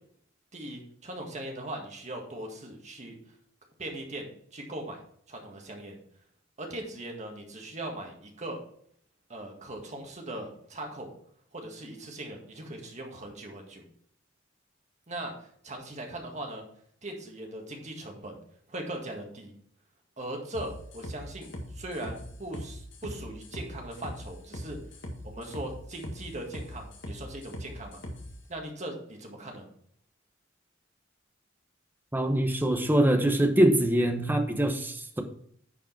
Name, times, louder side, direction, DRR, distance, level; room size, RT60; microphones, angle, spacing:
voice 1, 0.5-3.2 3.8-5.0 5.3-6.0 6.6-8.6 9.3-11.1 11.5-13.8 15.1-16.6 17.0-18.4 18.7-19.5 20.2-24.8 25.2-28.0 28.5-29.7, right 1 dB, 35° right, 2 dB, 1.8 m, -39 dB
sound 1, 20.5-28.3, equal, 65° left, 1.9 m, -41 dB
voice 2, 32.1-35.2, right 1 dB, 10° right, 5 dB, 1.0 m, -24 dB
10.5 x 5.0 x 4.7 m, 0.62 s
head